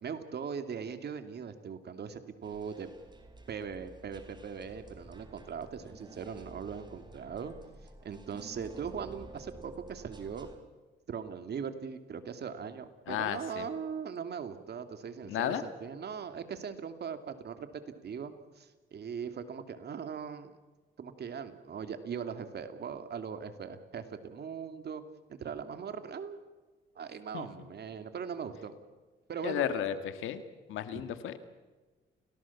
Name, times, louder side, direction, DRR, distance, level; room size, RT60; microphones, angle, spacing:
voice 1, 0.0-2.9 3.5-7.5 8.0-10.5 11.1-20.5 21.0-25.0 25.3-26.4 26.9-28.8 29.3-29.8 30.9-31.1, right 6 dB, 55° right, 8 dB, 2.7 m, -40 dB
sound 1, 2.4-10.6, right 2 dB, 20° right, 4.4 m, -51 dB
voice 2, 13.1-13.7 15.3-15.6 27.3-27.5 29.4-30.4 30.7-31.4, left 10 dB, 85° left, 10 dB, 2.0 m, -33 dB
29.5 x 18.5 x 7.3 m, 1.3 s
cardioid pair, 90°, 20 cm